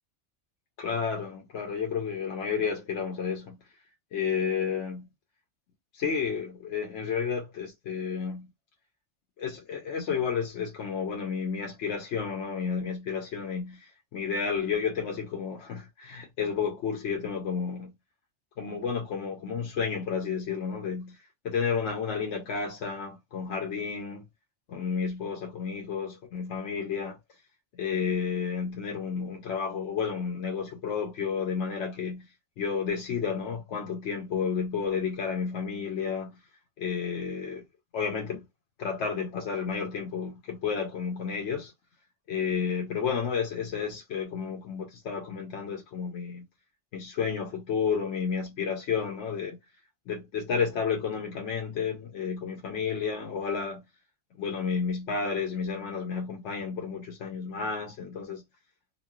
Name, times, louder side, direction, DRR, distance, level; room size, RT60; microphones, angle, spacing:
voice 1, 0.8-3.6 4.1-5.1 5.9-8.5 9.4-13.8 14.1-17.9 18.6-21.2 21.4-24.2 24.7-27.2 27.8-32.2 32.6-36.3 36.8-37.6 37.9-38.4 38.8-41.7 42.3-46.4 46.9-49.6 50.1-53.8 54.4-58.4, left 6 dB, 85° left, 1.0 m, -31 dB
3.1 x 2.3 x 2.3 m
omnidirectional pair, 1.2 m